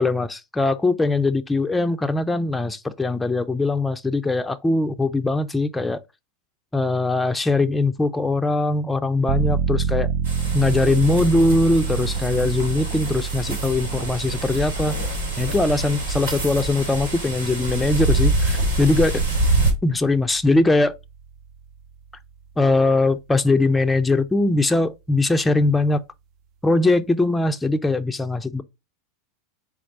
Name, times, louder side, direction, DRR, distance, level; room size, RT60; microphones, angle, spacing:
voice 1, 0.0-6.0 6.7-10.1 10.5-15.0 15.4-19.2 19.8-20.9 22.6-26.0 26.6-28.6, left 2 dB, 10° left, 0.4 m, -21 dB
sound 1, 9.3-21.8 22.1-22.2, right 6 dB, 50° right, 0.4 m, -29 dB
sound 2, 10.2-19.7, right 2 dB, 80° right, 1.7 m, -25 dB
4.3 x 2.4 x 3.9 m
hypercardioid pair, 95°, 0 cm